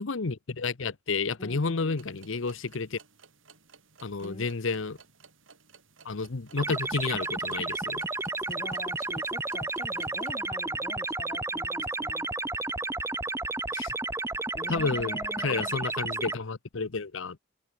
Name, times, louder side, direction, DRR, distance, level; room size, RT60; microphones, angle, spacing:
voice 1, 0.0-3.0 4.0-5.0 6.0-8.0 13.7-13.9 14.7-17.4, left 4 dB, 80° left, 0.9 m, -31 dB
voice 2, 1.4-2.0 4.2-4.5 8.5-12.3 14.5-15.7, left 1 dB, 30° left, 5.1 m, -44 dB
sound 1, 2.0-10.4, right 5 dB, 80° right, 6.8 m, -57 dB
sound 2, 6.6-16.3, right 2 dB, 15° right, 1.3 m, -32 dB
head